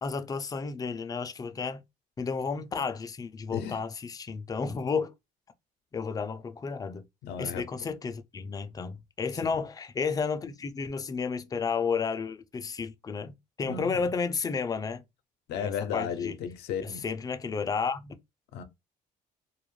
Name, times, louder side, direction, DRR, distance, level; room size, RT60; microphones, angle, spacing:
voice 1, 0.0-1.8 2.2-5.1 5.9-7.0 7.4-15.0 15.6-16.4 17.0-18.1, left 5 dB, 20° left, 0.3 m, -32 dB
voice 2, 7.2-7.9 9.4-9.6 13.6-14.1 15.5-17.1 18.5-18.6, left 7 dB, 75° left, 0.5 m, -34 dB
2.3 x 2.1 x 3.0 m
cardioid pair, 110°, 17 cm